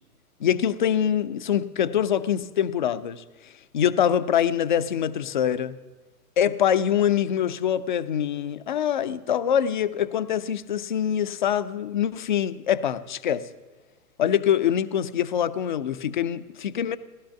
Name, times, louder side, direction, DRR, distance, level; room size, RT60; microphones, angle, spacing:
voice 1, 0.4-5.8 6.4-13.5 14.2-17.0, left 9 dB, 35° left, 0.4 m, -24 dB
16.0 x 12.5 x 5.8 m
figure-of-eight pair, 120°, 46 cm